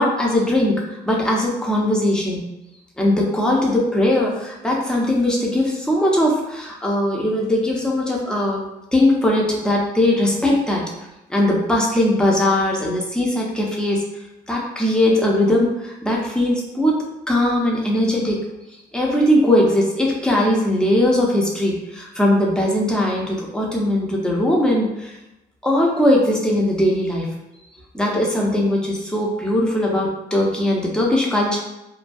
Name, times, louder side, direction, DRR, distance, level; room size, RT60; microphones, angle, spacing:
voice 1, 0.0-2.5 3.0-8.6 8.9-10.8 11.3-14.0 14.5-17.0 17.3-18.4 18.9-25.2 25.6-27.3 27.9-31.6, left 1 dB, 5° left, -2 dB, 0.5 m, -19 dB
2.3 x 2.2 x 2.5 m, 0.94 s
cardioid pair, 110°, 17 cm